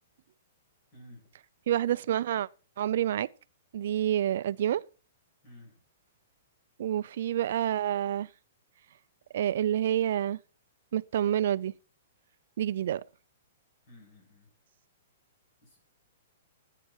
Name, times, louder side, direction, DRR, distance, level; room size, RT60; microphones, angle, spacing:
voice 1, 0.9-1.3 5.4-5.8 13.9-14.5 15.6-15.8, left 1 dB, 30° left, 7.8 m, -53 dB
voice 2, 1.7-2.5 2.8-3.3 3.7-4.8 6.8-8.3 9.3-10.4 10.9-11.7 12.6-13.0, right 11 dB, 60° right, 0.5 m, -28 dB
12.0 x 8.4 x 4.6 m
hypercardioid pair, 165°, 0 cm